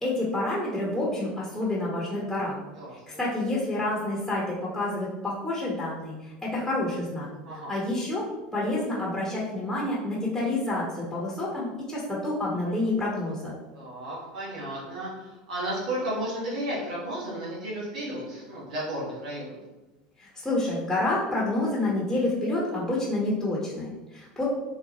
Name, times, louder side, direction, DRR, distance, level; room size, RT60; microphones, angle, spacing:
voice 1, 0.0-2.6 3.2-8.3 8.5-13.5 20.2-24.4, left 2 dB, 5° left, -6 dB, 1.0 m, -28 dB
voice 2, 2.7-3.2 7.4-7.8 13.7-19.5, right 1 dB, 90° right, -6 dB, 1.3 m, -33 dB
4.1 x 2.1 x 2.9 m, 1.1 s
hypercardioid pair, 100°, 4 cm